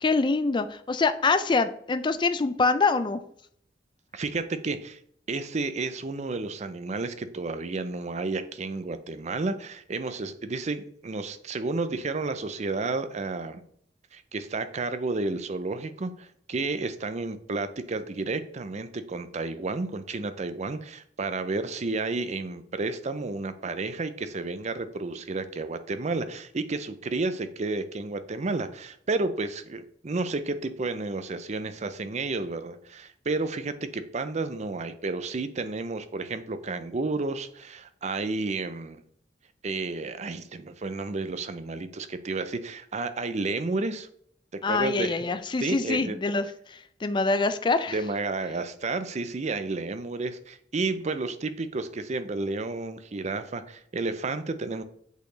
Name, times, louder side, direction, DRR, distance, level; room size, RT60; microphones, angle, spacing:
voice 1, 0.0-3.2 44.6-48.0, left 3 dB, 25° left, 11 dB, 0.4 m, -25 dB
voice 2, 4.1-5.0 5.3-13.6 14.1-39.0 39.6-44.1 44.5-45.2 45.6-46.2 47.9-54.8, right 3 dB, 40° right, 11 dB, 0.5 m, -31 dB
8.1 x 4.3 x 3.2 m, 0.65 s
head